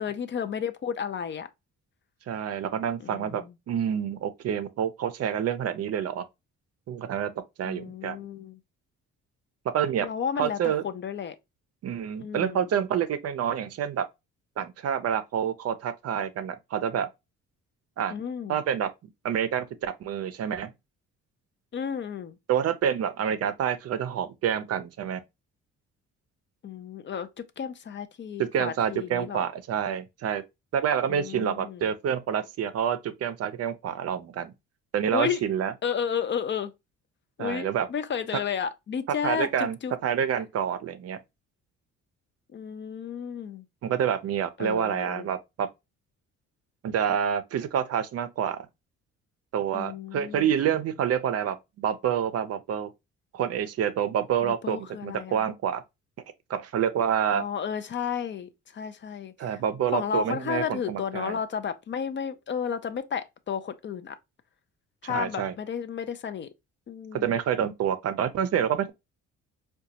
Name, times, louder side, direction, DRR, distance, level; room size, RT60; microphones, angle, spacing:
voice 1, 0.0-1.5 3.0-3.5 7.6-8.6 10.0-11.4 12.2-12.7 18.1-18.6 21.7-22.4 26.6-29.5 31.1-31.9 35.1-35.4 35.8-36.7 37.4-39.9 42.5-43.6 44.6-45.3 49.7-50.5 54.4-55.4 57.3-59.6 59.9-64.2 65.0-66.5 66.9-67.4, left 7 dB, 40° left, 0.4 m, -32 dB
voice 2, 2.3-6.2 6.9-7.3 7.6-8.2 9.7-10.1 10.4-10.8 11.8-14.0 14.6-17.1 18.0-18.1 18.5-18.9 19.2-20.7 22.5-25.2 28.4-30.4 30.7-34.5 34.9-35.7 37.4-37.9 39.2-39.8 40.0-41.2 43.8-45.7 46.8-48.7 49.5-52.9 53.3-55.8 56.5-57.4 59.4-61.4 65.0-65.5 67.2-68.9, right 8 dB, 55° right, 0.5 m, -28 dB
3.8 x 2.2 x 2.7 m
cardioid pair, 90°, 30 cm